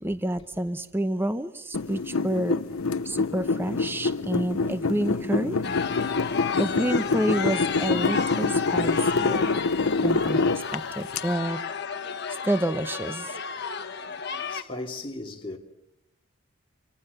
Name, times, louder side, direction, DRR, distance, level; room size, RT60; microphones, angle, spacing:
voice 1, 0.0-2.6 3.0-5.8 6.6-9.4 10.0-10.4 10.7-11.6 12.5-13.3, right 1 dB, 10° right, 0.8 m, -29 dB
sound 1, 1.7-11.2, left 3 dB, 85° left, 0.8 m, -26 dB
sound 2, 5.6-14.6, left 6 dB, 50° left, 1.5 m, -32 dB
voice 2, 14.5-15.6, left 2 dB, 25° left, 2.6 m, -36 dB
28.0 x 25.0 x 6.7 m
head